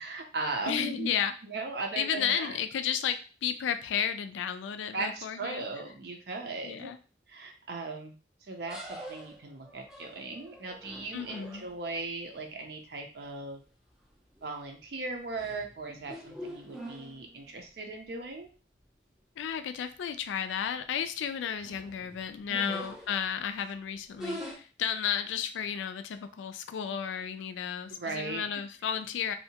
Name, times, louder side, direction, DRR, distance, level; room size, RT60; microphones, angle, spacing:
voice 1, 0.0-1.1 1.4-2.6 4.9-6.9 7.3-8.1 8.4-13.6 14.4-18.5 22.5-22.8 27.9-28.5, right 3 dB, 60° right, 2 dB, 0.5 m, -38 dB
voice 2, 0.7-1.3 2.0-5.7 6.6-7.0 11.1-11.7 19.4-29.3, left 8 dB, 80° left, 9 dB, 0.3 m, -33 dB
sound 1, 8.7-12.0 13.6-13.9 14.3-14.7 15.1-17.6 18.1-18.2 18.4-18.5 19.4-19.5 19.8-19.9 20.3-20.7 21.3-23.5 24.1-24.5, equal, 5° right, 0.4 m, -44 dB
2.7 x 2.1 x 2.8 m, 0.36 s
head